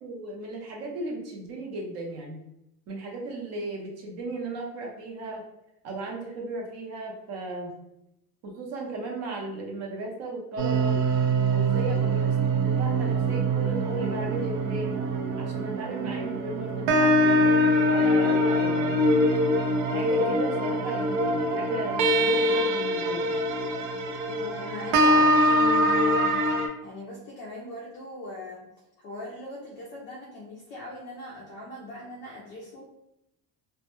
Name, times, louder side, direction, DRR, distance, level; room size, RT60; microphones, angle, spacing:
voice 1, 0.0-2.4 2.9-5.5 5.8-7.7 8.4-11.0 11.5-15.0 15.4-17.3 17.9-19.0 19.9-23.3, right 2 dB, 40° right, -1 dB, 0.6 m, -36 dB
sound 1, 10.6-26.7, right 1 dB, 85° right, 0.5 m, -23 dB
voice 2, 18.2-18.5 24.3-26.4 26.8-28.7 29.0-32.8, left 1 dB, 30° left, -3 dB, 0.4 m, -40 dB
2.2 x 2.1 x 2.9 m, 0.83 s
cardioid pair, 160°, 40 cm